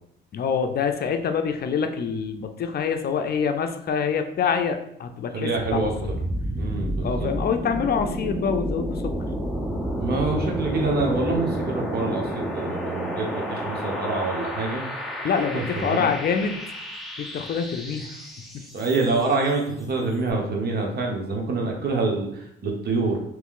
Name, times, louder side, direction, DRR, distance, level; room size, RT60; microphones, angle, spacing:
voice 1, 0.3-5.9 7.0-9.1 15.2-16.6 17.2-18.7, left 6 dB, 50° left, 7 dB, 0.5 m, -26 dB
voice 2, 5.3-5.9 6.5-7.3 10.0-14.9 15.5-16.1 18.7-23.2, right 3 dB, 55° right, 1 dB, 1.1 m, -26 dB
sound 1, 5.5-19.3, equal, ahead, 0.7 m, -30 dB
3.5 x 3.1 x 3.7 m, 0.74 s
cardioid pair, 90°, 20 cm